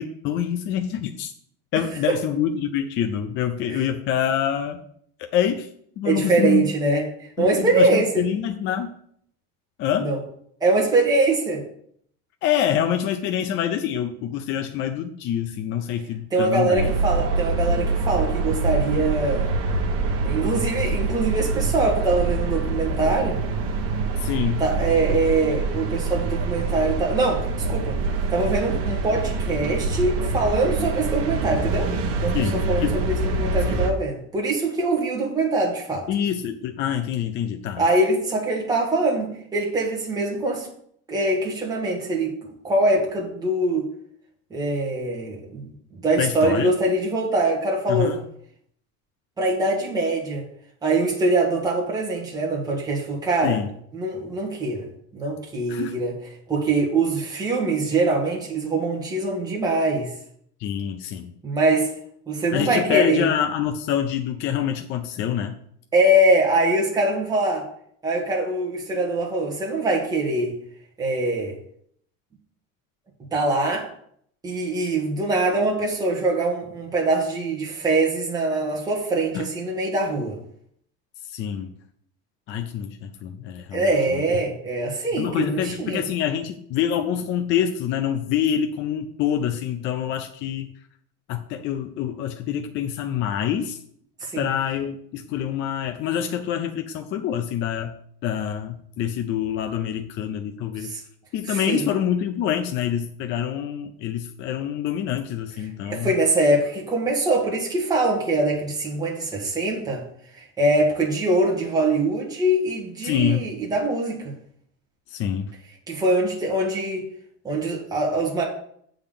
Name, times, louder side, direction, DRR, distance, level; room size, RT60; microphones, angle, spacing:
voice 1, 0.0-1.3 1.7-4.8 5.2-5.7 6.0-6.7 7.4-8.9 9.8-10.1 12.4-16.9 24.2-24.6 25.1-25.2 32.3-33.0 33.7-33.8 36.1-37.8 46.2-46.7 47.9-48.2 53.4-53.7 55.7-55.9 60.6-61.3 62.5-65.6 79.3-79.5 81.3-81.7 82.5-83.9 85.2-90.7 91.3-93.8 94.4-98.0 98.2-100.9 101.3-106.1 113.0-113.5 115.1-115.5, left 9 dB, 35° left, 6 dB, 0.5 m, -26 dB
voice 2, 6.0-8.2 10.0-10.2 10.6-11.6 16.3-19.5 20.2-23.4 24.6-28.0 28.3-32.4 32.7-32.9 33.4-36.1 37.8-40.7 41.1-43.9 44.5-45.7 46.0-48.2 49.4-50.4 50.8-53.6 53.9-54.8 55.1-56.1 56.5-60.1 61.4-61.9 62.3-63.2 65.9-67.7 68.0-70.6 71.0-71.5 73.3-73.9 74.4-80.4 83.7-86.0 94.2-94.5 100.8-101.0 101.5-101.8 105.8-110.0 110.4-114.3 115.9-117.1 117.4-118.4, right 2 dB, 10° right, -2 dB, 1.5 m, -23 dB
sound 1, 16.8-33.9, right 3 dB, 40° right, 1.2 m, -25 dB
8.2 x 3.9 x 6.8 m, 0.65 s
cardioid pair, 165°, 36 cm